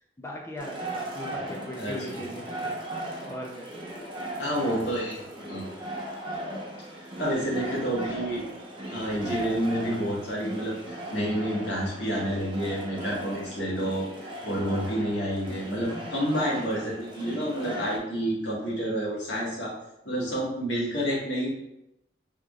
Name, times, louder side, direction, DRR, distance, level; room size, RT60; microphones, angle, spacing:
voice 1, 0.2-2.7 3.3-3.7, left 1 dB, 15° left, -1 dB, 0.5 m, -39 dB
sound 1, 0.6-18.0, right 1 dB, 30° right, 1.0 m, -38 dB
voice 2, 4.4-5.7 7.0-8.5 8.9-19.7 20.0-21.5, equal, 85° left, -4 dB, 1.6 m, -29 dB
4.8 x 3.6 x 2.4 m, 0.86 s
head